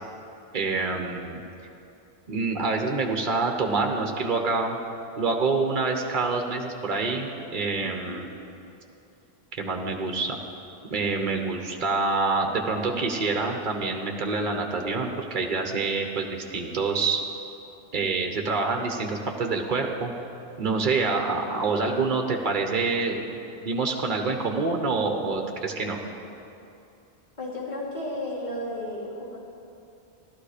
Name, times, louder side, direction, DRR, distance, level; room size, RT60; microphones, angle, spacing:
voice 1, 0.5-1.4 2.3-4.8 5.2-8.3 9.5-10.4 10.9-17.2 17.9-20.1 20.6-26.0, right 3 dB, 50° right, 3 dB, 1.2 m, -26 dB
voice 2, 7.8-8.2 27.4-29.4, left 1 dB, 45° left, -6 dB, 3.1 m, -33 dB
15.0 x 12.5 x 5.0 m, 2.7 s
omnidirectional pair, 1.1 m